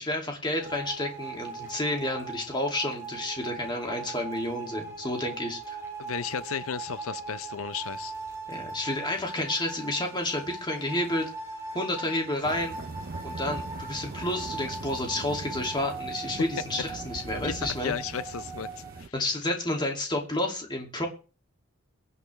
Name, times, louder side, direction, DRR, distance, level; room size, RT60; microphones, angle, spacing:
voice 1, 0.0-5.8 8.5-11.3 11.7-12.8 13.2-17.9 19.1-21.1, left 1 dB, 20° left, 2.5 m, -30 dB
sound 1, 0.6-19.0, right 3 dB, 15° right, 3.7 m, -40 dB
voice 2, 6.0-8.1 17.4-17.5 17.8-19.1, left 7 dB, 85° left, 0.6 m, -34 dB
sound 2, 12.4-19.1, right 3 dB, 45° right, 0.5 m, -41 dB
23.0 x 8.2 x 3.3 m
head